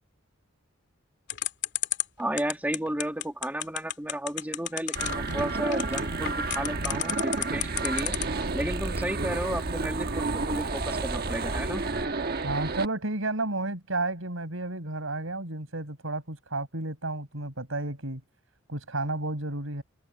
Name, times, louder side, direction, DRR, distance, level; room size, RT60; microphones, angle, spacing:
sound 1, 1.3-8.4, left 12 dB, 60° left, 2.6 m, -30 dB
voice 1, 2.2-8.2 8.5-11.9, right 1 dB, 10° right, 2.1 m, -33 dB
sound 2, 4.9-12.8, right 3 dB, 50° right, 1.2 m, -30 dB
voice 2, 12.4-18.2 18.7-19.8, right 2 dB, 85° right, 5.4 m, -32 dB
head